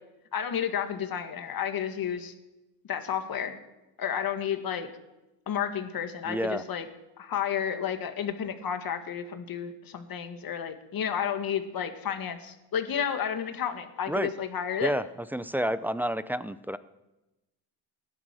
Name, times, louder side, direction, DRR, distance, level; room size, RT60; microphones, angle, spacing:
voice 1, 0.3-2.3 2.9-3.6 4.0-4.9 5.5-6.9 7.2-14.9, left 8 dB, 45° left, 7 dB, 1.9 m, -31 dB
voice 2, 6.3-6.6 14.1-14.3 14.8-15.0 15.3-16.8, equal, 5° right, 15 dB, 0.4 m, -29 dB
17.0 x 11.0 x 7.6 m, 1.0 s
cardioid pair, 115°, 48 cm